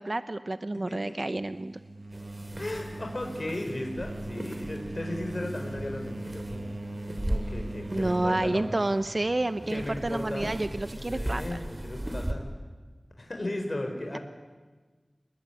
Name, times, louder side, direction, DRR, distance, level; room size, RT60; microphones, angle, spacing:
voice 1, 0.0-1.8 7.9-11.6, right 2 dB, 50° right, 11 dB, 0.9 m, -29 dB
voice 2, 0.9-1.2 2.6-6.7 7.2-8.7 9.7-10.6 10.9-12.5 13.2-14.2, left 1 dB, 50° left, 3 dB, 4.6 m, -36 dB
sound 1, 1.4-9.1, right 2 dB, 85° right, 1.6 m, -39 dB
sound 2, 2.1-12.3, right 1 dB, 25° right, 3.1 m, -38 dB
28.0 x 20.5 x 9.8 m, 1.3 s
wide cardioid pair, 50°, 0 cm